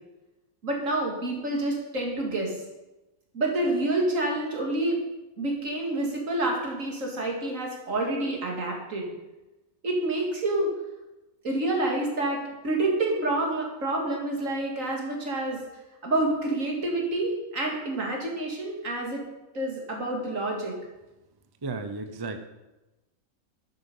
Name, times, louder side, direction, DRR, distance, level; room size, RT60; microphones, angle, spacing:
voice 1, 0.6-2.5 3.3-5.0 5.4-9.1 9.8-10.7 11.4-15.6 16.0-19.2 19.5-20.8, right 2 dB, 60° right, 0 dB, 2.8 m, -28 dB
voice 2, 21.6-22.5, right 3 dB, 20° right, 8 dB, 0.6 m, -34 dB
12.0 x 9.7 x 5.5 m, 1.0 s
omnidirectional pair, 1.5 m